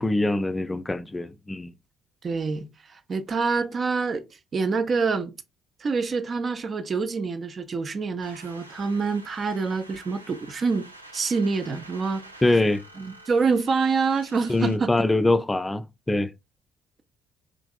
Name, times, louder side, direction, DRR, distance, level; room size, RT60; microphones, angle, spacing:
voice 1, 0.0-1.7 12.4-12.8 14.5-16.3, left 2 dB, 20° left, 0.4 m, -23 dB
voice 2, 2.2-4.2 4.5-5.3 5.8-10.9 11.1-12.2 13.0-14.9, right 4 dB, 40° right, 0.6 m, -26 dB
sound 1, 8.2-14.8, right 2 dB, 90° right, 0.4 m, -48 dB
5.0 x 3.4 x 2.2 m
figure-of-eight pair, 45°, 0 cm